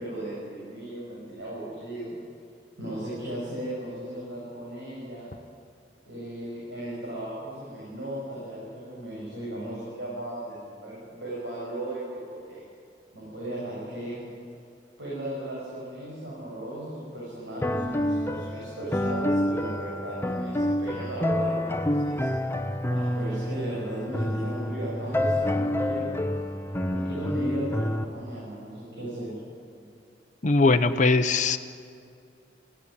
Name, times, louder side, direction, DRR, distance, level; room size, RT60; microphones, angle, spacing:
voice 1, 0.0-2.2 2.8-5.3 6.1-12.6 13.1-14.2 15.0-22.3 22.9-26.2 26.9-29.4, right 1 dB, 70° right, -7 dB, 7.5 m, -36 dB
sound 1, 17.6-28.0, left 1 dB, 15° left, 0.8 m, -28 dB
voice 2, 30.4-31.6, left 3 dB, 40° left, 7 dB, 0.7 m, -20 dB
21.5 x 16.0 x 9.8 m, 2.4 s
head